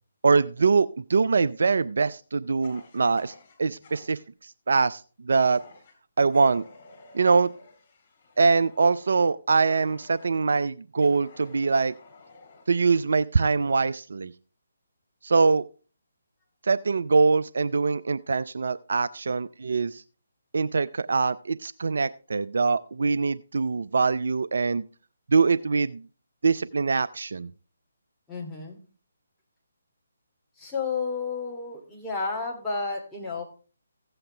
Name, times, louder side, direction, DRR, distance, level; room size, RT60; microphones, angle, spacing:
voice 1, 0.2-3.3 3.6-4.2 4.7-5.6 6.2-6.6 7.1-7.5 8.4-11.9 12.7-14.3 15.2-15.6 16.6-20.0 20.5-24.8 25.3-26.0 26.4-27.5, right 4 dB, 65° right, 15 dB, 0.4 m, -23 dB
Fire, 2.6-4.2 5.5-6.0 6.3-10.5 11.0-12.8, left 3 dB, 35° left, 4.1 m, -52 dB
voice 2, 28.3-28.8 30.6-33.4, left 4 dB, 5° left, -5 dB, 2.8 m, -31 dB
15.5 x 7.8 x 3.4 m, 0.37 s
figure-of-eight pair, 145°, 0 cm